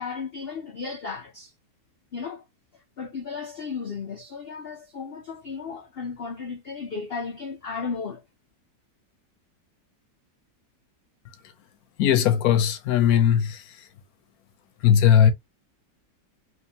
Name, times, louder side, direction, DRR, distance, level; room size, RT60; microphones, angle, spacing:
voice 1, 0.0-1.5 2.1-2.4 2.7-8.2, left 5 dB, 90° left, 0.5 m, -34 dB
voice 2, 12.0-13.6 14.8-15.3, left 9 dB, 70° left, 1.0 m, -18 dB
3.5 x 3.0 x 2.8 m
omnidirectional pair, 1.9 m